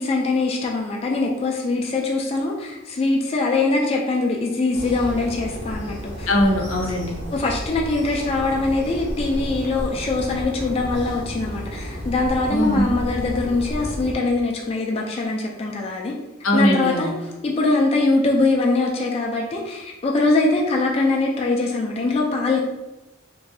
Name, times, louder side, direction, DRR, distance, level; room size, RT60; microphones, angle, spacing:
voice 1, 0.0-6.3 7.3-16.1 16.5-22.7, left 3 dB, 30° left, -1 dB, 0.3 m, -22 dB
sound 1, 4.7-14.1, equal, 60° right, 0.9 m, -32 dB
voice 2, 6.3-7.2 12.5-12.9 16.4-17.1, equal, 85° left, 1 dB, 0.6 m, -20 dB
3.0 x 2.6 x 2.6 m, 1.0 s
head